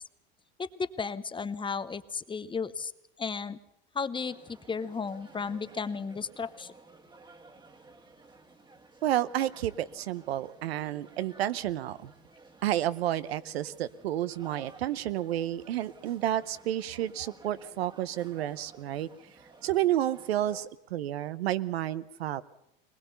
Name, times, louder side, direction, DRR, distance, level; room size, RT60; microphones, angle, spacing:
voice 1, 0.6-2.9 3.2-3.6 3.9-6.7, left 5 dB, 15° left, 14 dB, 0.8 m, -34 dB
sound 1, 4.2-20.7, right 3 dB, 15° right, 1.7 m, -55 dB
voice 2, 9.0-12.1 12.6-19.1 19.6-22.4, right 12 dB, 85° right, 15 dB, 0.9 m, -30 dB
20.5 x 19.5 x 6.9 m, 0.83 s
hypercardioid pair, 105°, 30 cm